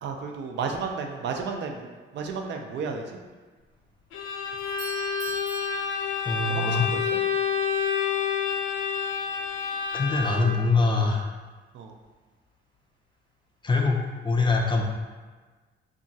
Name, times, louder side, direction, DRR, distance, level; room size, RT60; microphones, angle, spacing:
voice 1, 0.0-3.2 6.4-7.0 11.7-11.9, right 5 dB, 65° right, 3 dB, 0.4 m, -33 dB
Bowed string instrument, 4.1-10.7, left 6 dB, 85° left, 0.4 m, -28 dB
Doorbell, 4.6-6.7, left 1 dB, 85° right, 1.2 m, -42 dB
voice 2, 6.3-6.9 9.9-11.3 13.6-14.8, left 3 dB, 25° left, 1 dB, 0.4 m, -24 dB
2.8 x 2.4 x 2.6 m, 1.3 s
cardioid pair, 90°, 20 cm